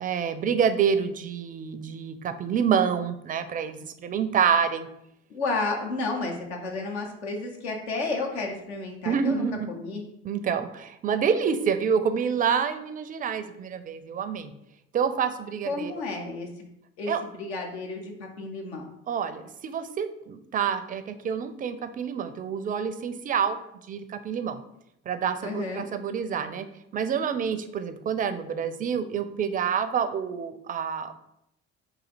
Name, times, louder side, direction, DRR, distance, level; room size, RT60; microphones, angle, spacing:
voice 1, 0.0-4.9 9.1-9.7 10.2-14.5 14.9-15.9 17.1-17.2 19.1-24.6 25.1-26.7 26.9-31.2, right 7 dB, 25° right, 10 dB, 0.4 m, -27 dB
voice 2, 5.3-10.0 15.7-16.7 17.0-18.8 25.4-25.8, left 3 dB, 80° left, 1 dB, 0.8 m, -32 dB
4.0 x 2.6 x 4.1 m, 0.78 s
figure-of-eight pair, 50°, 33 cm